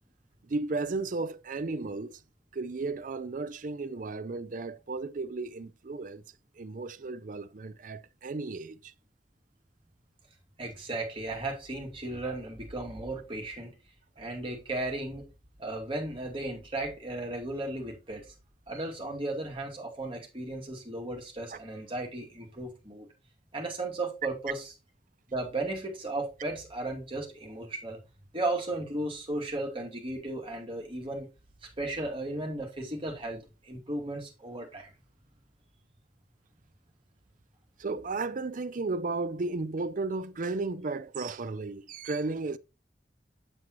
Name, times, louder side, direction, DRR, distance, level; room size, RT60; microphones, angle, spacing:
voice 1, 0.4-2.2 2.5-6.2 6.6-8.9 18.7-18.8 21.5-21.6 37.8-42.6, right 3 dB, 50° right, 0.5 m, -34 dB
voice 2, 10.6-13.8 14.2-15.3 15.6-18.3 18.7-23.1 23.5-24.6 25.3-28.0 28.3-31.3 31.6-34.9, right 2 dB, 30° right, 2.4 m, -35 dB
7.6 x 7.5 x 3.0 m
head